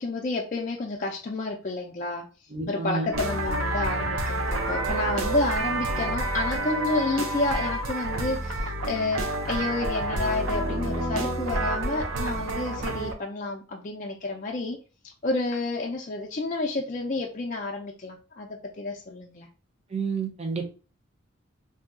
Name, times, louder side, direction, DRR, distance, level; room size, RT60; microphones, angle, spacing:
voice 1, 0.0-2.3 2.7-14.8 15.2-19.5, left 2 dB, 35° left, 0 dB, 0.4 m, -30 dB
voice 2, 2.5-3.1 19.9-20.7, right 4 dB, 30° right, 3 dB, 0.6 m, -30 dB
sound 1, 3.1-13.1, right 1 dB, 80° right, 0.6 m, -29 dB
2.7 x 2.3 x 3.6 m, 0.35 s
head